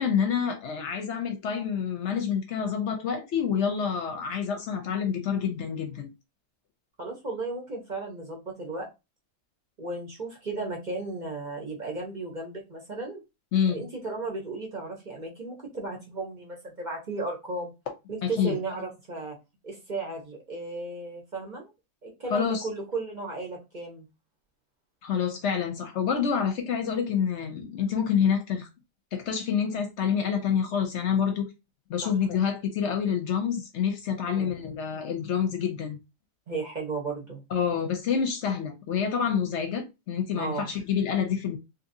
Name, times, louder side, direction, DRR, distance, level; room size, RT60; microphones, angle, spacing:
voice 1, 0.0-6.1 13.5-13.8 18.2-18.6 22.3-22.7 25.0-28.7 29.1-31.5 31.9-36.0 37.5-41.6, left 7 dB, 65° left, 0.8 m, -27 dB
voice 2, 7.0-8.9 9.8-13.2 13.7-17.7 18.1-19.4 19.6-21.7 22.0-24.1 32.0-32.1 34.3-34.5 36.5-37.4 40.4-40.7, right 3 dB, 40° right, 0.8 m, -35 dB
2.8 x 2.7 x 2.6 m
omnidirectional pair, 1.4 m